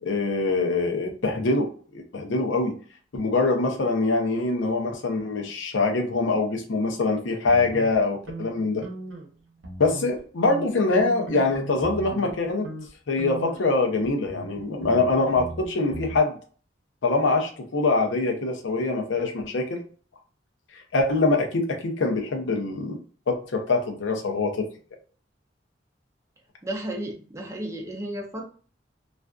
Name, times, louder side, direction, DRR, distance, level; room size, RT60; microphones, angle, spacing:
voice 1, 0.0-2.8 3.1-8.8 9.8-12.7 13.1-16.3 17.0-19.8 20.9-23.0 23.3-24.7, left 3 dB, 85° left, 3 dB, 0.6 m, -24 dB
sound 1, 7.5-9.3 9.6-10.2 10.5-12.3 12.6-12.9 13.2-16.2, right 2 dB, 80° right, 0.7 m, -39 dB
voice 2, 26.6-28.5, right 1 dB, 15° right, 0 dB, 0.5 m, -33 dB
2.4 x 2.4 x 2.2 m, 0.42 s
head